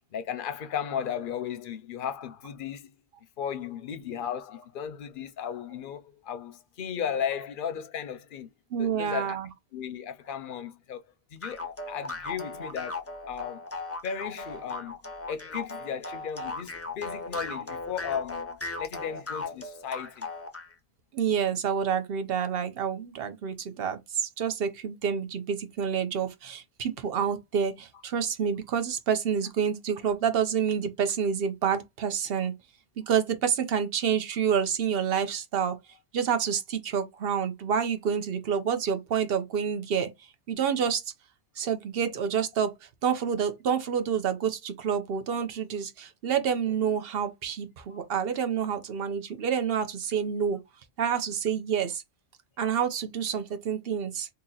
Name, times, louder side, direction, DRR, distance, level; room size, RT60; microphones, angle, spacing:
voice 1, 0.1-2.9 3.4-8.5 8.8-9.4 9.7-11.0 11.3-13.8 14.0-15.0 15.3-20.3 47.9-48.0, left 8 dB, 60° left, 0.7 m, -35 dB
voice 2, 8.7-9.5 21.1-32.5 33.0-35.8 36.1-40.1 40.5-41.1 41.6-42.7 43.0-50.6 51.0-52.0 52.6-54.3, right 7 dB, 65° right, 0.9 m, -28 dB
sound 1, 11.4-20.7, left 3 dB, 20° left, 0.4 m, -37 dB
2.9 x 2.7 x 3.8 m
omnidirectional pair, 1.1 m